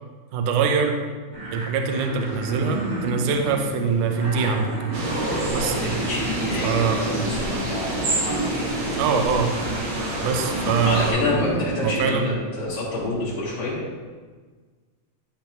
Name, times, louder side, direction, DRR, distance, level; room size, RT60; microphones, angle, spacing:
voice 1, 0.3-1.0 1.5-4.7 5.5-5.9 6.6-7.0 9.0-9.5 10.2-11.2 11.8-12.3, right 5 dB, 80° right, 4 dB, 2.0 m, -23 dB
sound 1, 1.3-12.0, right 1 dB, 35° right, 1.6 m, -31 dB
sound 2, 4.9-11.1, right 1 dB, 60° right, 2.3 m, -29 dB
voice 2, 5.6-9.0 10.8-13.8, left 2 dB, 65° left, -9 dB, 3.3 m, -28 dB
12.5 x 5.2 x 3.0 m, 1.4 s
omnidirectional pair, 4.1 m